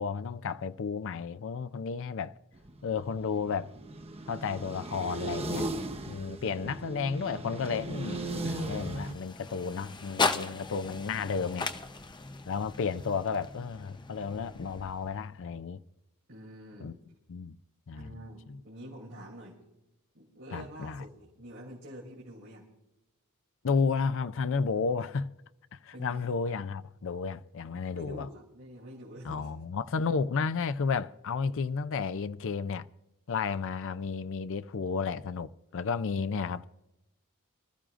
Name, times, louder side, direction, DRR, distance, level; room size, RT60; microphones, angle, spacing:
voice 1, 0.0-2.4 2.8-3.7 4.3-5.7 6.1-11.7 12.5-15.8 16.8-17.0 17.3-17.6 17.9-18.1 18.5-18.6 20.5-21.0 23.6-25.3 25.7-28.3 29.2-32.9 33.3-36.6, left 5 dB, 60° left, 0.5 m, -32 dB
sound 1, 2.5-9.1, right 2 dB, 30° right, 1.1 m, -37 dB
sound 2, 7.2-15.5, left 3 dB, 20° left, 0.7 m, -37 dB
voice 2, 16.3-16.9 18.0-19.6 20.1-22.7 25.9-26.3 27.9-29.5, equal, 55° right, 2.9 m, -47 dB
25.0 x 14.0 x 2.5 m
head